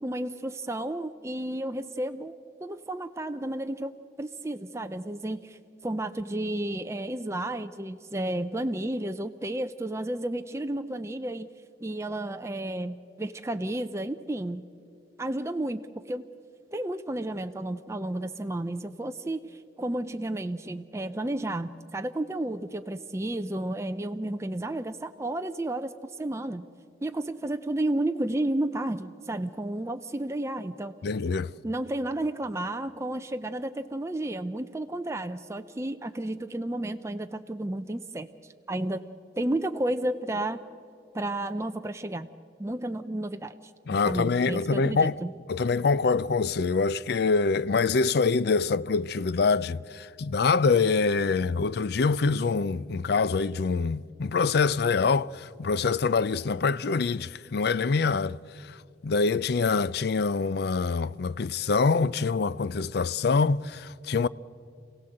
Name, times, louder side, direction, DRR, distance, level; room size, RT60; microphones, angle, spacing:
voice 1, 0.0-2.4 2.6-11.5 11.8-14.6 15.2-16.3 16.7-26.6 27.0-30.9 31.6-39.0 39.4-40.6 41.1-42.3 42.6-43.5 44.0-45.3, right 1 dB, 15° right, 0.5 m, -32 dB
voice 2, 31.0-31.5 43.9-45.2 45.5-58.4 59.0-64.3, left 4 dB, 60° left, 0.4 m, -25 dB
27.5 x 16.5 x 7.8 m
head